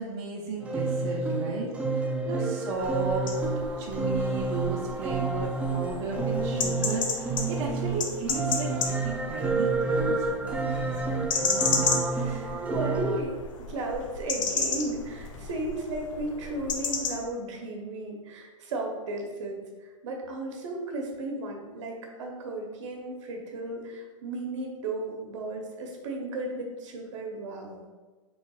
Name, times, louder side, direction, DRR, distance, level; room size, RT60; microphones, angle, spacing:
voice 1, 0.0-3.3 3.8-12.5, right 3 dB, 40° right, -3 dB, 0.8 m, -35 dB
sound 1, 0.6-13.2, right 3 dB, 10° right, 0.3 m, -29 dB
sound 2, 2.7-17.2, left 4 dB, 70° left, 0.7 m, -33 dB
voice 2, 12.3-13.3 13.7-27.8, right 2 dB, 65° right, 1 dB, 1.0 m, -35 dB
5.3 x 3.2 x 2.4 m, 1.3 s
hypercardioid pair, 120°, 17 cm